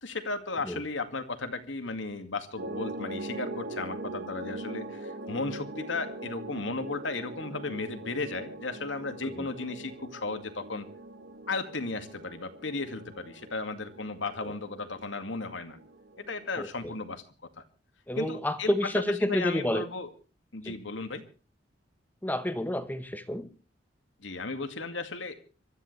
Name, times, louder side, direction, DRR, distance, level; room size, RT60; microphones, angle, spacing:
voice 1, 0.0-10.9 11.5-15.8 16.2-17.2 17.6-17.7 18.2-18.9 19.2-20.1 20.5-21.2 24.2-25.6, left 3 dB, 90° left, 8 dB, 2.2 m, -35 dB
sound 1, 2.6-16.5, right 2 dB, 60° right, 1.2 m, -42 dB
voice 2, 18.1-19.9 20.6-20.8 22.2-23.5, left 1 dB, 10° left, 11 dB, 1.1 m, -29 dB
25.5 x 13.5 x 3.3 m, 0.35 s
head